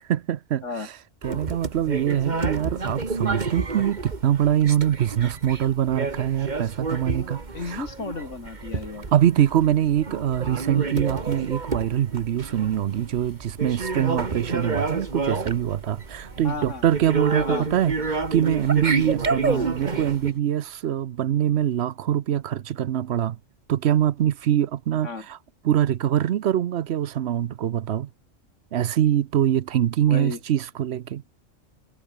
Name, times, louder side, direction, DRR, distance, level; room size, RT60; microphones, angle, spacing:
voice 1, 0.1-0.6 1.2-7.4 7.7-7.9 9.1-23.4 23.7-25.4 25.6-28.1 28.7-31.2, right 10 dB, 60° right, 0.9 m, -23 dB
sound 1, 1.2-20.3, right 3 dB, 35° right, 1.9 m, -30 dB
sound 2, 3.4-20.4, equal, 15° right, 6.8 m, -57 dB
voice 2, 7.5-9.1 16.4-16.8 17.4-17.7 19.5-19.7 25.0-25.3 30.1-30.4, left 4 dB, 70° left, 2.9 m, -33 dB
omnidirectional pair, 1.3 m